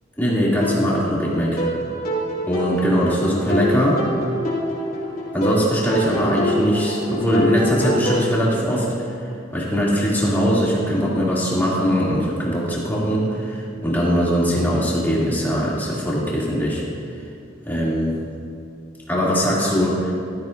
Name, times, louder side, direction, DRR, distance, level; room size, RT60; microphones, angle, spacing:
voice 1, 0.2-1.6 2.5-4.0 5.3-9.2 9.5-16.8 17.6-18.1 19.1-20.1, equal, 10° left, -7 dB, 2.7 m, -21 dB
sound 1, 0.6-8.3, equal, 45° left, 2.9 m, -26 dB
18.0 x 13.0 x 2.6 m, 2.6 s
head